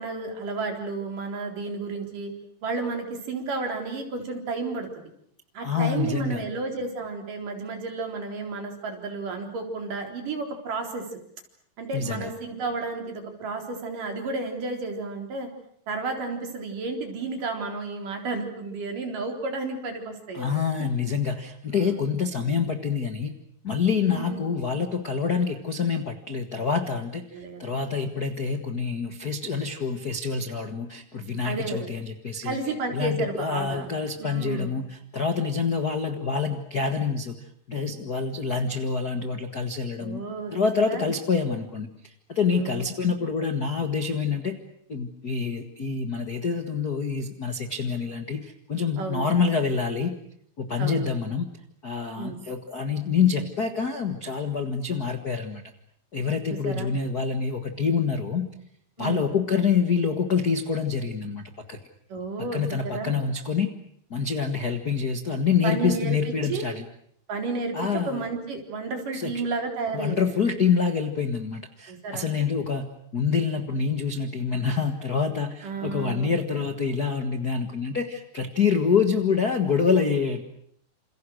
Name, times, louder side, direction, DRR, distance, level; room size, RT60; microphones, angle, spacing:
voice 1, 0.0-2.3 2.6-4.9 5.5-11.2 11.8-15.5 15.9-20.9 21.7-22.1 24.0-24.5 27.3-27.8 31.4-31.9 32.4-33.9 34.2-34.8 40.0-40.5 40.9-41.1 42.5-42.9 49.0-49.3 50.8-51.1 52.2-52.4 56.5-56.9 59.0-59.2 62.1-63.1 65.6-66.2 66.5-66.6 67.3-67.8 68.1-70.2 71.9-72.3 75.6-76.4, right 3 dB, 55° right, 3 dB, 5.3 m, -32 dB
voice 2, 5.6-6.4 11.9-12.3 20.3-23.3 23.6-32.6 32.9-37.3 37.7-40.2 40.5-44.6 44.9-50.1 50.6-51.4 51.8-55.6 56.1-58.5 59.0-61.4 61.7-61.8 62.5-63.7 64.1-66.8 67.7-68.2 69.1-69.5 69.9-80.4, left 5 dB, 60° left, 7 dB, 0.9 m, -26 dB
28.5 x 28.0 x 6.4 m, 0.67 s
omnidirectional pair, 4.6 m